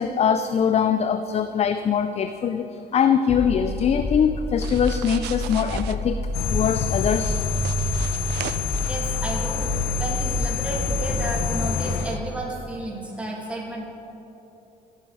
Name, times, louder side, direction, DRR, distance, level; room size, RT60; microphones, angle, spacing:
voice 1, 0.0-2.7 2.9-6.2 6.5-7.3, left 7 dB, 40° left, 9 dB, 0.5 m, -22 dB
sound 1, 3.3-12.4, left 1 dB, 20° left, 1.1 m, -29 dB
sound 2, 4.6-6.0 7.2-8.9, right 13 dB, 85° right, 0.5 m, -37 dB
sound 3, 6.3-12.2, left 5 dB, 80° left, 1.0 m, -28 dB
voice 2, 8.9-13.8, right 1 dB, 5° right, -3 dB, 2.6 m, -32 dB
15.5 x 9.1 x 4.8 m, 3.0 s
cardioid pair, 110°, 17 cm